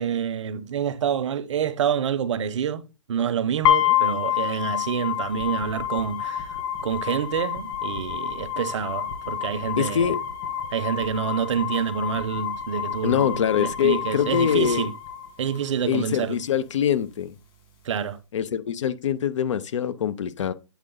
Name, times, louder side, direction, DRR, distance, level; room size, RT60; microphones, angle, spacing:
voice 1, 0.0-2.8 3.1-6.6 6.8-10.1 10.7-14.9 15.4-16.4 17.8-18.2, right 8 dB, 70° right, 1.0 m, -27 dB
sound 1, 3.6-15.7, left 10 dB, 50° left, 2.5 m, -28 dB
voice 2, 9.8-10.2 13.0-14.9 15.9-17.4 18.3-20.5, left 8 dB, 70° left, 0.8 m, -24 dB
8.3 x 3.7 x 3.9 m
hypercardioid pair, 135°, 16 cm